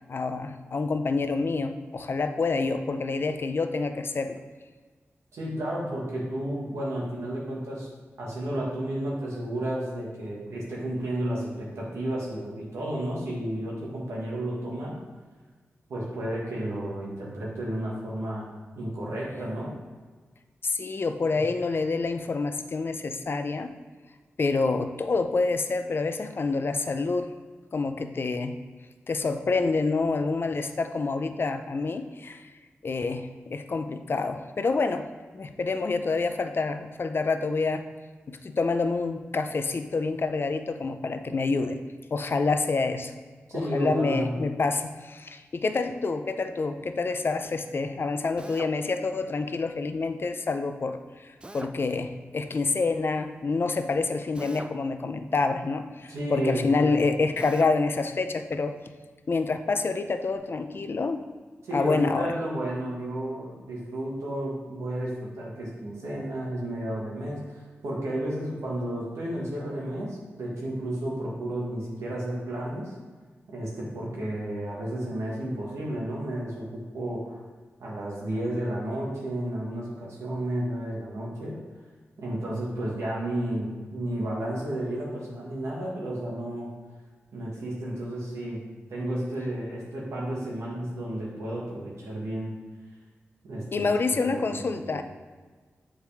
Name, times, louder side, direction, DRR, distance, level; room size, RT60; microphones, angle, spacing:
voice 1, 0.1-4.4 20.6-23.7 24.4-27.3 27.7-28.6 29.1-32.5 32.8-35.1 35.3-37.9 38.3-41.8 42.1-43.1 43.5-51.0 51.2-58.8 59.3-61.2 61.7-62.3 93.7-95.0, left 3 dB, 50° left, 8 dB, 0.5 m, -27 dB
voice 2, 5.3-7.9 8.2-15.0 15.9-18.5 18.8-19.8 21.4-21.5 43.5-44.3 56.1-57.0 61.7-72.9 73.5-77.4 77.8-81.6 82.2-86.7 87.3-92.5 93.4-94.0 94.2-95.0, right 1 dB, 90° right, -4 dB, 1.8 m, -32 dB
Drill, 48.4-48.8 51.4-51.8 54.3-54.8 57.4-57.8, right 2 dB, 20° right, 0.4 m, -42 dB
7.3 x 4.8 x 3.5 m, 1.4 s
cardioid pair, 65°, 5 cm